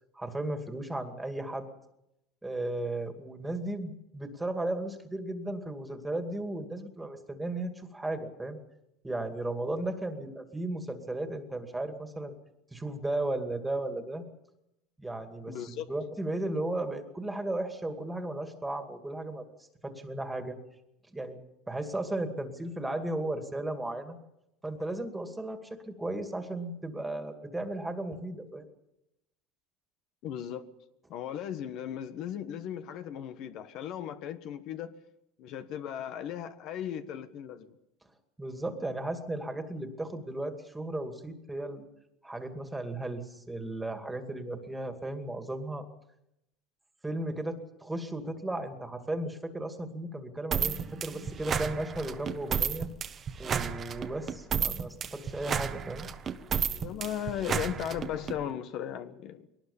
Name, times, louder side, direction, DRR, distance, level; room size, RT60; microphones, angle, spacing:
voice 1, 0.2-1.7 2.4-8.6 9.0-12.3 12.7-14.2 15.0-19.5 19.8-20.6 21.1-21.4 21.7-24.2 24.6-28.7 38.4-41.8 42.2-45.9 47.0-52.9 53.4-56.1, right 2 dB, 5° right, 7 dB, 2.4 m, -35 dB
voice 2, 15.5-15.8 30.2-30.6 31.1-34.9 35.4-37.7 56.7-59.5, left 10 dB, 55° left, 10 dB, 1.4 m, -37 dB
sound 1, 50.5-58.4, right 7 dB, 30° right, 1.3 m, -32 dB
22.0 x 19.0 x 7.2 m, 0.85 s
supercardioid pair, 135°, 0 cm